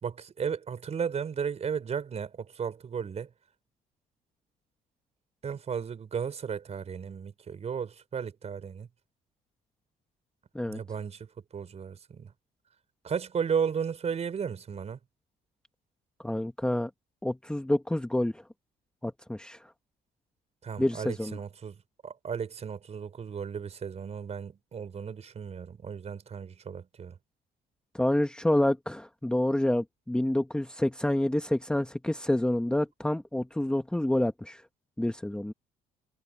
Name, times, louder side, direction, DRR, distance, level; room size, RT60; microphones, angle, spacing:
voice 1, 0.0-3.3 5.4-8.9 10.7-11.3 11.5-12.3 13.0-15.0 20.6-21.8 22.0-27.2, right 7 dB, 40° right, 5.3 m, -34 dB
voice 2, 16.2-16.9 17.2-18.4 19.0-19.6 20.8-21.4 27.9-34.6 35.0-35.5, left 1 dB, 5° left, 1.4 m, -28 dB
cardioid pair, 110°, 17 cm